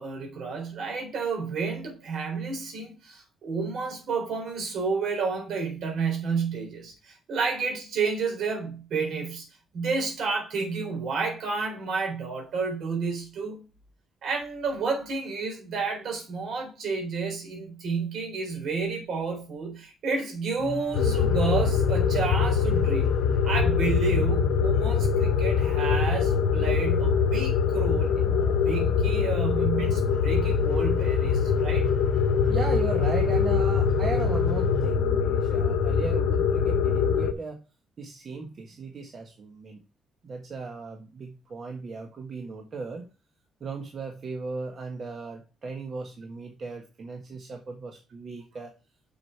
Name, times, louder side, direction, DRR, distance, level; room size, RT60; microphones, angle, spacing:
voice 1, 0.0-9.5 9.7-13.6 14.2-23.1 23.4-31.9, right 4 dB, 70° right, 4.0 m, -30 dB
sound 1, 20.6-34.9, left 2 dB, 30° left, 2.5 m, -36 dB
sound 2, 20.9-37.3, left 6 dB, 90° left, 0.7 m, -23 dB
voice 2, 32.5-37.6 38.0-39.8 40.2-43.1 43.6-48.7, right 4 dB, 50° right, 1.4 m, -36 dB
6.5 x 6.2 x 4.6 m
cardioid pair, 90°, 0 cm